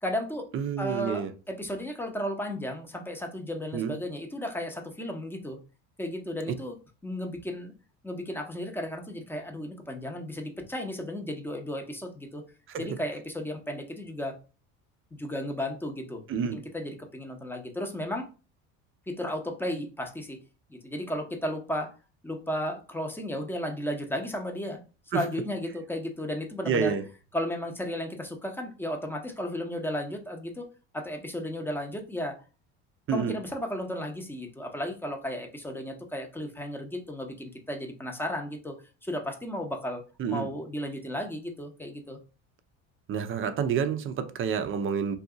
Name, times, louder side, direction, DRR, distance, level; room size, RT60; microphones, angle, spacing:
voice 1, 0.0-0.5 0.8-5.6 6.0-6.8 7.0-7.7 8.0-12.4 12.8-14.3 15.1-16.2 16.5-18.3 19.1-20.4 20.7-21.9 22.2-24.8 25.1-26.9 27.3-30.7 30.9-32.4 33.1-38.8 39.0-40.0 40.3-42.2, left 1 dB, 5° left, 0.8 m, -34 dB
voice 2, 0.5-1.3 3.7-4.0 6.5-6.6 12.7-12.9 16.3-16.6 25.1-25.3 26.6-27.0 33.1-33.4 40.2-40.5 43.1-45.2, right 7 dB, 35° right, 0.5 m, -29 dB
2.6 x 2.3 x 3.7 m
supercardioid pair, 90°, 36 cm